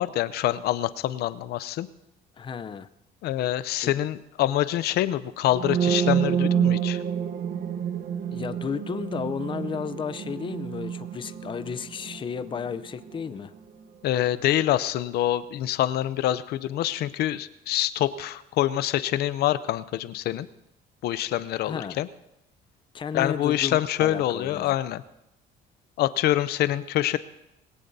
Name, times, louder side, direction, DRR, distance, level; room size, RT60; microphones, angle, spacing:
voice 1, 0.0-1.9 3.2-7.0 14.0-20.5 21.0-22.1 23.1-25.0 26.0-27.2, left 13 dB, 75° left, 15 dB, 0.6 m, -26 dB
voice 2, 2.4-2.9 3.8-3.9 8.3-13.5 21.6-22.0 22.9-24.7, left 6 dB, 30° left, 12 dB, 0.6 m, -33 dB
sound 1, 5.5-13.3, right 9 dB, 60° right, 1.1 m, -28 dB
21.5 x 17.0 x 2.7 m, 0.86 s
cardioid pair, 110°, 17 cm